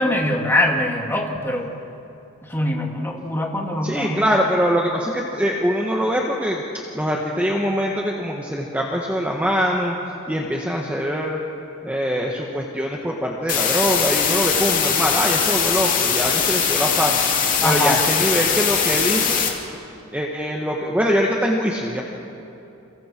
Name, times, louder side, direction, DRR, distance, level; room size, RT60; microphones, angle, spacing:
voice 1, 0.0-1.7 2.4-4.3 17.6-18.0, left 1 dB, 10° left, 0 dB, 2.6 m, -23 dB
voice 2, 3.8-6.6 6.9-10.0 10.3-11.4 11.8-17.2 17.6-19.4 20.1-22.0, equal, 5° right, -1 dB, 1.5 m, -23 dB
sound 1, 13.5-19.5, left 7 dB, 40° left, 2.8 m, -21 dB
29.5 x 28.5 x 4.6 m, 2.9 s
head